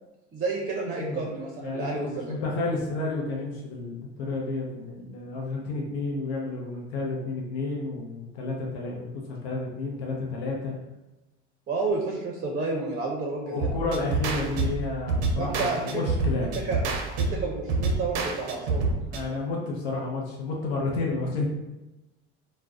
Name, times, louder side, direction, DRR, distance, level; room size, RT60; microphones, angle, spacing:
voice 1, 0.3-2.3 11.7-13.7 15.4-16.1 16.4-16.8 17.2-18.9, right 3 dB, 25° right, 0 dB, 0.5 m, -30 dB
voice 2, 1.0-1.3 1.6-10.8 13.4-16.6 19.1-21.5, left 3 dB, 85° left, -2 dB, 0.7 m, -31 dB
sound 1, 13.6-19.2, right 3 dB, 85° right, 0.6 m, -28 dB
2.4 x 2.2 x 3.4 m, 1.0 s
supercardioid pair, 90°, 32 cm